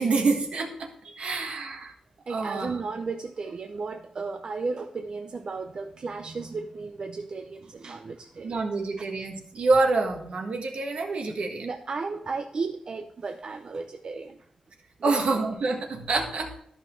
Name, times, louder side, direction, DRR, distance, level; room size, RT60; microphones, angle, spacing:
voice 1, 0.0-0.9 1.2-1.9 2.3-2.8 8.4-11.7 15.0-16.6, right 3 dB, 70° right, 2 dB, 1.5 m, -26 dB
voice 2, 1.0-1.5 2.3-8.6 9.0-9.1 11.6-14.4 15.1-15.4, right 4 dB, 45° right, 5 dB, 0.5 m, -34 dB
13.0 x 5.6 x 3.2 m, 0.69 s
wide cardioid pair, 175°, 2 cm